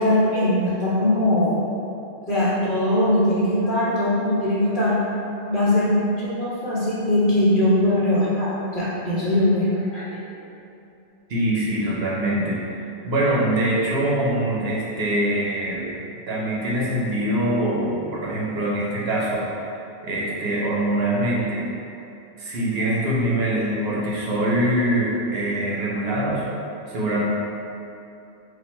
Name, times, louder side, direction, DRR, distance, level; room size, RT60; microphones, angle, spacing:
voice 1, 0.0-1.6 2.3-5.0 5.5-5.9 6.2-10.1, left 1 dB, 45° left, -10 dB, 1.4 m, -21 dB
voice 2, 9.9-10.4 11.3-15.9 16.3-19.8 20.0-21.7 22.4-26.5 26.9-27.2, right 1 dB, 65° right, -5 dB, 0.9 m, -24 dB
4.3 x 2.6 x 4.3 m, 2.8 s
omnidirectional pair, 1.2 m